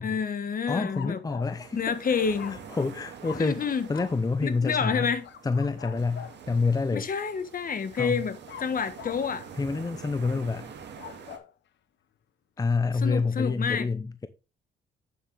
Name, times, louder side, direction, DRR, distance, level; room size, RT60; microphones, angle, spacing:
voice 1, 0.0-1.2 1.8-2.6 3.4-3.9 4.4-5.3 6.9-9.5 13.0-13.9, left 6 dB, 45° left, 1.4 m, -29 dB
voice 2, 0.7-2.2 2.7-3.6 3.9-5.1 5.4-7.1 8.0-8.2 9.6-10.7 12.6-14.3, left 4 dB, 20° left, 0.6 m, -27 dB
sound 1, 0.8-1.6 2.3-2.9 3.2-3.6 3.9-4.2 5.2-6.4 8.5-9.3 10.8-11.5, left 9 dB, 65° left, 0.9 m, -44 dB
sound 2, 1.4-11.4, right 7 dB, 60° right, 2.2 m, -46 dB
8.6 x 7.7 x 3.4 m
cardioid pair, 90°, 20 cm